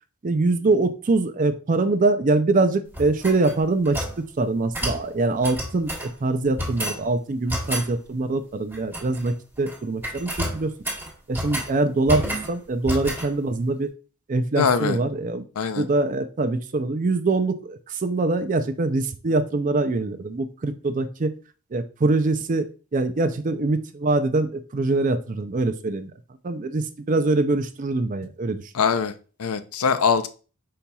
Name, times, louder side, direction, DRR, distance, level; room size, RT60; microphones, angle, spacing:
voice 1, 0.2-10.7 11.3-13.9 14.3-15.4 15.8-21.3 21.7-26.1 26.4-28.7, right 2 dB, 35° right, 10 dB, 0.4 m, -24 dB
sound 1, 2.9-4.2 4.7-5.0 5.4-6.1 6.6-7.0 7.5-7.9 8.7-9.3 9.6-9.8 10.0-11.7 12.1-12.5 12.9-13.3, equal, 10° right, 1.3 m, -30 dB
voice 2, 14.6-15.0 15.6-15.8 28.7-29.1 29.4-30.3, left 6 dB, 85° left, 11 dB, 0.5 m, -22 dB
5.3 x 4.3 x 2.3 m, 0.36 s
head